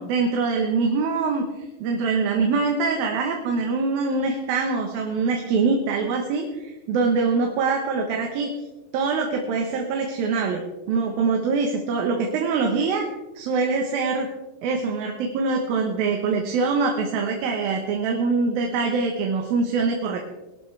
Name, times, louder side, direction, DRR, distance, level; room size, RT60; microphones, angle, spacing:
voice 1, 0.0-1.4 1.8-8.5 8.9-10.6 10.9-13.0 13.4-14.3 14.6-20.2, right 4 dB, 90° right, 2 dB, 3.1 m, -24 dB
21.0 x 12.0 x 3.4 m, 1.1 s
omnidirectional pair, 4.0 m